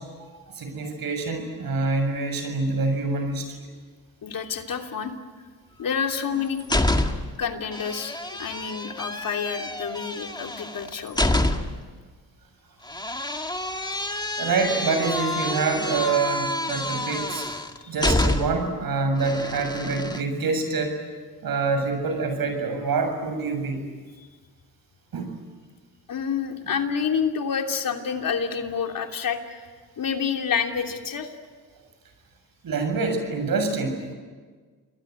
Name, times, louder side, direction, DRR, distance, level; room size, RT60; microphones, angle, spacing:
voice 1, 0.5-3.4 14.4-17.4 17.9-21.0 21.4-23.8 25.1-25.3 32.6-34.1, right 4 dB, 65° right, 6 dB, 7.3 m, -26 dB
voice 2, 4.2-5.1 5.8-6.6 7.4-11.2 17.8-17.9 26.1-29.6 30.0-31.3, left 6 dB, 60° left, 4 dB, 3.1 m, -28 dB
sound 1, 6.1-7.4 7.7-11.9 12.9-18.7 19.2-20.2, left 1 dB, 10° left, 2.2 m, -28 dB
28.5 x 21.0 x 9.6 m, 1.5 s
cardioid pair, 75°, 38 cm